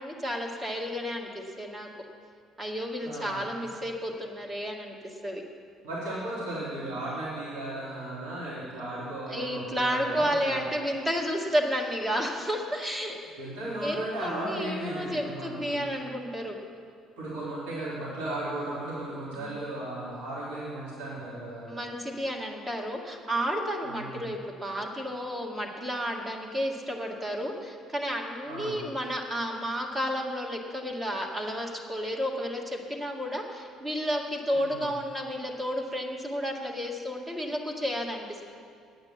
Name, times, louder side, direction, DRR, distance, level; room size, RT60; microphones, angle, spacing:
voice 1, 0.0-1.9 2.6-5.4 9.3-13.2 13.8-16.6 19.4-19.6 21.7-38.4, equal, 25° right, 1 dB, 1.9 m, -32 dB
voice 2, 3.0-3.5 5.8-10.6 13.4-15.8 17.2-21.7 23.8-24.2 28.5-28.8 34.5-34.8, right 1 dB, 75° right, -8 dB, 3.1 m, -36 dB
9.8 x 8.8 x 7.1 m, 2.2 s
hypercardioid pair, 55°, 0 cm